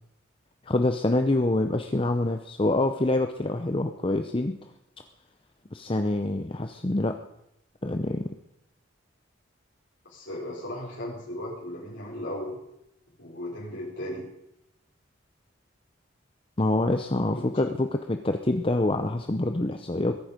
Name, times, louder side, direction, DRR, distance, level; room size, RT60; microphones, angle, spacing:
voice 1, 0.6-4.6 5.7-7.2 7.8-8.3 16.6-20.2, left 2 dB, 25° left, 7 dB, 0.7 m, -26 dB
voice 2, 10.1-12.6 13.2-14.2 17.3-17.4, left 1 dB, 65° left, -5 dB, 4.9 m, -36 dB
22.0 x 10.5 x 5.2 m, 0.83 s
head